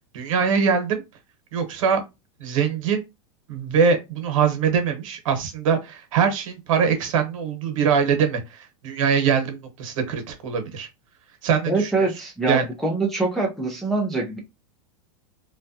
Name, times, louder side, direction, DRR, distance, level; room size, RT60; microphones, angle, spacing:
voice 1, 0.1-1.0 1.5-2.0 2.4-3.0 3.5-10.9 11.4-12.1 12.5-12.6, right 6 dB, 70° right, 1.1 m, -22 dB
voice 2, 11.7-14.4, right 3 dB, ahead, 0.5 m, -24 dB
3.2 x 2.3 x 2.7 m
supercardioid pair, 160°, 17 cm